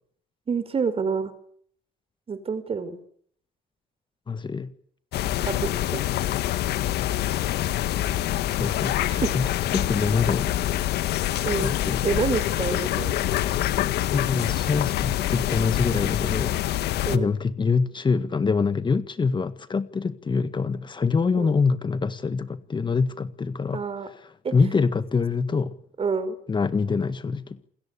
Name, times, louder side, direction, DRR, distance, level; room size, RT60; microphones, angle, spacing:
voice 1, 0.5-1.3 2.3-3.0 5.4-5.7 9.2-9.3 11.4-11.7 12.0-13.1 17.1-17.3 21.3-21.5 23.7-24.1 24.4-24.5 26.0-26.4, right 5 dB, 35° right, 12 dB, 5.5 m, -27 dB
voice 2, 4.3-4.7 8.0-8.3 8.6-10.5 11.6-12.0 14.1-16.6 17.1-25.8 26.5-27.6, left 5 dB, 30° left, 12 dB, 1.8 m, -25 dB
sound 1, 5.1-17.2, left 13 dB, 75° left, 1.8 m, -26 dB
29.0 x 21.5 x 8.6 m, 0.63 s
cardioid pair, 110°, 17 cm